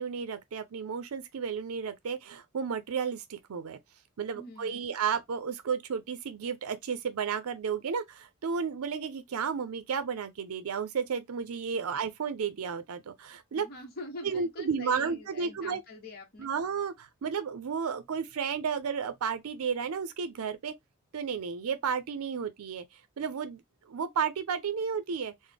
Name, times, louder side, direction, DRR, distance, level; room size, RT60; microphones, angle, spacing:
voice 1, 0.0-3.8 4.2-13.7 14.2-15.8 16.4-20.7 21.1-22.9 23.2-23.6 23.9-25.3, right 6 dB, 90° right, 0.5 m, -32 dB
voice 2, 4.3-4.8 11.7-11.9 13.5-16.5, left 2 dB, 45° left, 0.8 m, -45 dB
3.9 x 2.0 x 3.3 m
head